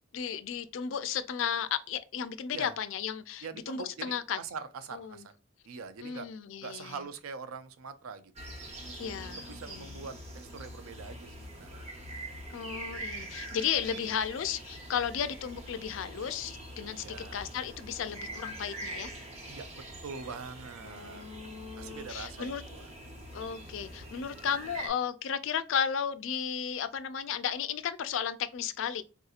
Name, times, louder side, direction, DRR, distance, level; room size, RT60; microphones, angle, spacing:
voice 1, 0.1-4.4 4.9-5.3 6.0-7.0 9.0-10.1 12.5-19.1 20.8-22.6 23.3-29.0, left 8 dB, 65° left, 0.3 m, -34 dB
voice 2, 3.4-5.3 5.6-6.3 6.6-8.3 9.3-11.9 17.0-17.4 19.5-19.7 20.0-21.2 21.8-22.9, right 5 dB, 85° right, 0.4 m, -43 dB
sound 1, 8.4-24.9, right 1 dB, 30° right, 0.7 m, -44 dB
3.6 x 2.8 x 2.4 m
head